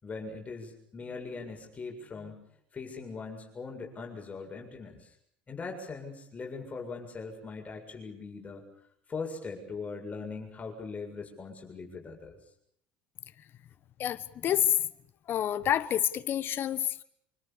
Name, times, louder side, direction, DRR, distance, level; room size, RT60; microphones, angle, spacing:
voice 1, 0.0-2.4 2.7-5.1 5.5-8.6 9.1-12.4, left 4 dB, 30° left, 7.4 m, -40 dB
voice 2, 14.0-14.9 15.3-17.0, left 10 dB, 50° left, 1.3 m, -28 dB
26.0 x 24.5 x 7.0 m
hypercardioid pair, 80°, 5 cm